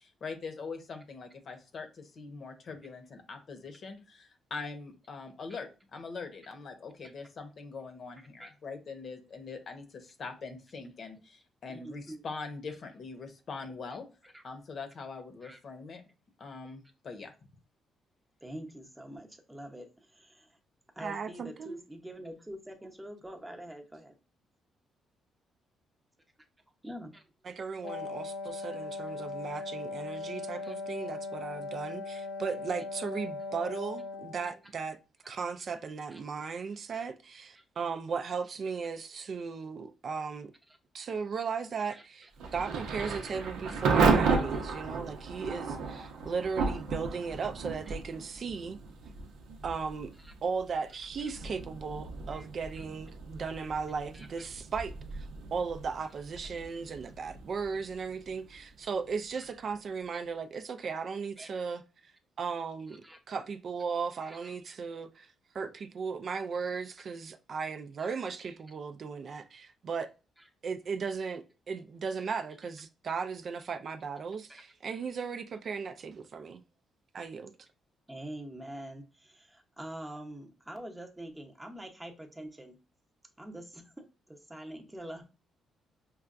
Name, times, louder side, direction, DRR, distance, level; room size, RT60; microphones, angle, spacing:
voice 1, 0.2-14.0 14.4-16.0 16.4-17.3, left 4 dB, 55° left, 0.8 m, -42 dB
voice 2, 8.2-8.5 11.7-12.3 14.3-14.4 15.4-15.6 18.4-20.6 20.9-24.1 26.8-27.2 29.5-29.6 30.6-30.7 36.1-36.2 36.9-37.0 37.6-37.7 40.7-40.8 41.8-42.3 43.0-43.1 44.3-44.6 45.4-45.5 47.9-48.0 50.2-50.3 51.2-51.3 52.3-52.5 54.1-54.5 56.4-56.5 59.4-59.5 60.1-60.2 61.4-61.5 63.0-63.2 64.2-64.7 68.0-68.1 70.4-70.5 74.5-74.6 78.1-82.8 83.4-85.2, right 1 dB, 10° right, 0.8 m, -46 dB
voice 3, 21.0-21.8 27.4-35.0 35.3-40.5 40.9-48.8 49.6-50.1 50.4-62.1 62.4-70.1 70.6-76.6 77.1-77.5, right 5 dB, 50° right, 0.4 m, -36 dB
Wind instrument woodwind instrument, 27.8-34.6, left 3 dB, 80° left, 0.5 m, -39 dB
Thunder / Rain, 42.4-59.1, right 4 dB, 85° right, 0.7 m, -34 dB
5.4 x 2.2 x 2.4 m
cardioid pair, 90°, 0 cm